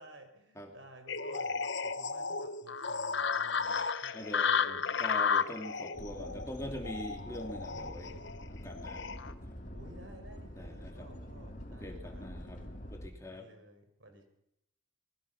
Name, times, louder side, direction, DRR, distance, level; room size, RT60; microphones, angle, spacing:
voice 1, 0.0-4.8 9.7-12.3 13.3-14.2, right 1 dB, 75° right, 6 dB, 4.6 m, -55 dB
sound 1, 1.1-9.3, left 5 dB, 65° left, 1.0 m, -33 dB
voice 2, 4.1-8.1 8.5-9.1 10.5-11.1 11.7-12.6 12.9-13.5, left 1 dB, 15° left, 2 dB, 2.9 m, -43 dB
sound 2, 5.9-13.1, equal, 40° left, 2.8 m, -46 dB
25.5 x 21.0 x 5.9 m, 0.80 s
head